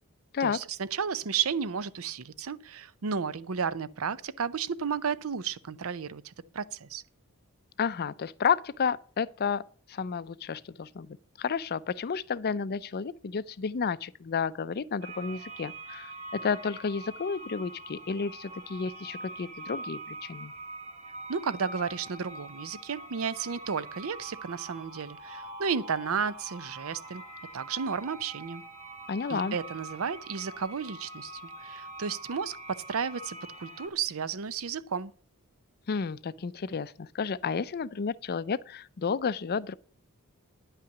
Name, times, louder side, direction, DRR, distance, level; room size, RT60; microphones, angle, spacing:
voice 1, 0.4-7.0 21.3-27.2 27.5-28.6 29.3-35.1, right 6 dB, 65° right, 0.6 m, -33 dB
voice 2, 7.8-9.6 9.9-20.5 29.1-29.6 35.9-39.7, left 6 dB, 45° left, 0.4 m, -31 dB
sound 1, 15.0-33.9, right 2 dB, 30° right, 1.3 m, -44 dB
10.0 x 5.7 x 8.1 m
head